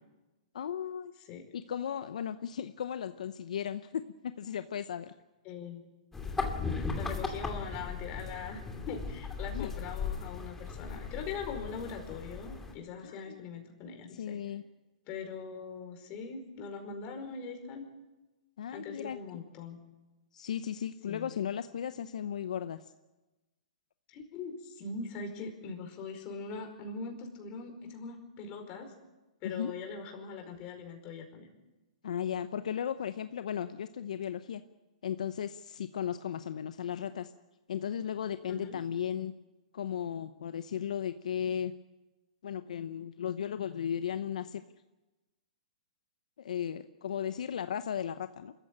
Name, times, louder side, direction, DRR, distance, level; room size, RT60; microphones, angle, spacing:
voice 1, 0.5-1.1 1.5-5.1 9.5-9.7 13.0-13.4 14.1-14.6 18.6-19.2 20.3-22.9 29.4-29.7 32.0-34.6 35.0-37.3 37.7-39.3 39.7-41.7 42.4-44.6 46.4-48.5, left 9 dB, 75° left, 11 dB, 0.8 m, -36 dB
voice 2, 5.4-5.9 7.0-14.4 15.1-17.8 18.7-19.8 21.1-21.3 24.1-28.9 29.4-31.5 38.5-38.8, left 5 dB, 35° left, 4 dB, 5.0 m, -41 dB
sound 1, 6.1-12.7, left 4 dB, 10° left, 2.6 m, -37 dB
25.5 x 14.5 x 8.8 m, 1.1 s
hypercardioid pair, 140°, 4 cm